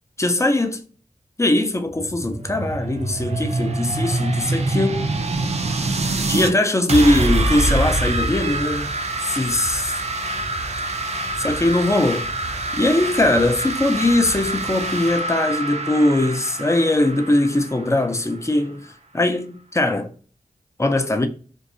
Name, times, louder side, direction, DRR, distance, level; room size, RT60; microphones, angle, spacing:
voice 1, 0.2-0.8 1.4-5.1 6.2-8.9 9.2-10.0 11.4-12.3 12.7-20.1 20.8-21.3, left 1 dB, 20° left, 0.4 m, -20 dB
sound 1, 1.9-6.5 6.9-18.5, right 2 dB, 45° right, 0.4 m, -25 dB
2.6 x 2.0 x 2.4 m
wide cardioid pair, 55°, 15 cm